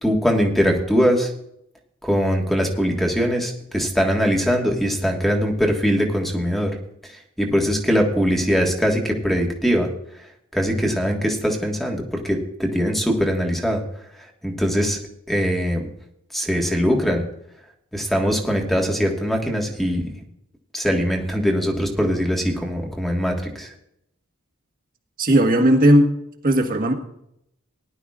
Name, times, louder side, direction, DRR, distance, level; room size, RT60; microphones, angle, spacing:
voice 1, 0.0-1.3 2.0-6.8 7.4-9.9 10.5-13.8 14.2-15.0 15.3-15.9 16.3-17.2 17.9-20.0 20.7-23.7, equal, ahead, 1 dB, 1.5 m, -21 dB
voice 2, 25.2-26.1 26.4-26.9, right 1 dB, 40° right, 4 dB, 1.5 m, -16 dB
19.0 x 11.5 x 2.4 m, 0.76 s
head